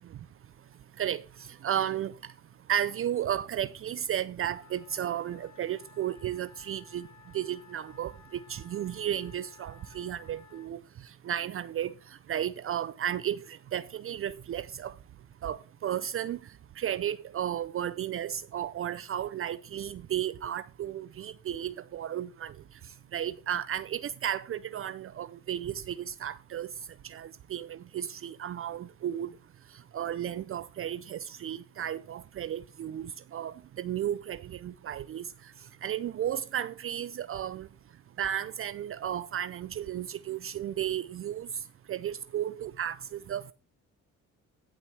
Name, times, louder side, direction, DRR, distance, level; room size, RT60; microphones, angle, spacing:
voice 1, 1.6-2.1 2.7-7.0 7.3-8.1 8.5-10.8 11.3-11.9 12.3-14.9 15.4-15.6 15.8-16.4 16.8-22.5 23.1-26.7 27.0-29.3 29.9-35.2 35.8-37.7 38.2-41.5 41.9-43.5, right 10 dB, 45° right, 0.4 m, -33 dB
Wind instrument woodwind instrument, 4.4-10.7, left 8 dB, 65° left, 2.1 m, -57 dB
15.0 x 6.0 x 3.3 m
cardioid pair, 90°, 30 cm